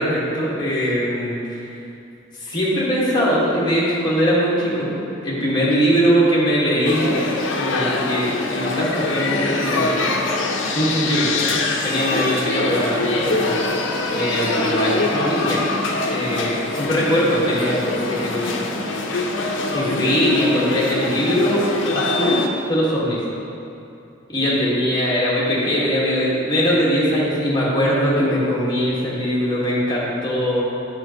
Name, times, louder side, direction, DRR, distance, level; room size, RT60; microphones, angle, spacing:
voice 1, 0.0-1.6 2.4-4.9 5.2-7.2 7.5-10.1 10.7-11.5 11.8-13.6 14.1-15.7 16.1-18.8 19.7-21.6 21.9-22.4 22.7-23.2 24.3-30.6, equal, 25° left, -6 dB, 1.5 m, -21 dB
sound 1, 6.8-22.5, left 2 dB, 75° left, 0.6 m, -23 dB
8.1 x 6.2 x 2.9 m, 2.7 s
head